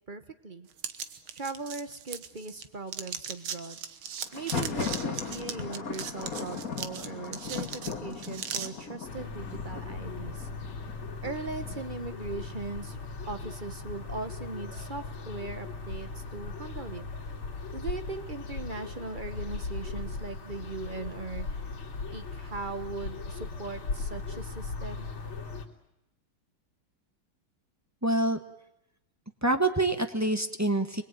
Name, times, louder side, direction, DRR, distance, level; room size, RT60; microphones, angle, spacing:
voice 1, 0.1-0.7 1.3-3.8 4.3-10.5 11.2-13.0 13.3-17.0 17.7-21.6 22.1-25.1, right 3 dB, 35° right, 9 dB, 0.8 m, -39 dB
sound 1, 0.8-2.6 2.9-8.7, right 8 dB, 70° right, 2.0 m, -38 dB
Thunder, 4.3-12.0, left 5 dB, 40° left, 2.1 m, -38 dB
sound 2, 9.0-25.7, left 4 dB, 70° left, 3.5 m, -38 dB
voice 2, 28.0-28.4 29.4-31.0, right 2 dB, 10° right, 7 dB, 1.0 m, -26 dB
27.5 x 21.0 x 9.1 m, 0.85 s
omnidirectional pair, 2.4 m